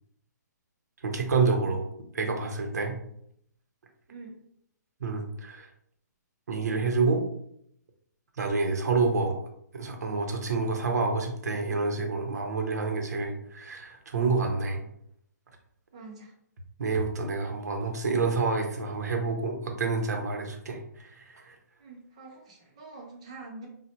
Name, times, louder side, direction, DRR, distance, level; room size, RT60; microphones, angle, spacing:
voice 1, 1.0-1.8 2.1-3.0 5.0-5.7 6.5-7.3 8.4-9.4 9.7-14.8 16.8-21.6, right 4 dB, 60° right, 4 dB, 0.7 m, -28 dB
voice 2, 15.9-16.3 21.8-23.7, right 3 dB, 20° right, 0 dB, 0.4 m, -45 dB
4.0 x 2.0 x 2.7 m, 0.71 s
hypercardioid pair, 180°, 10 cm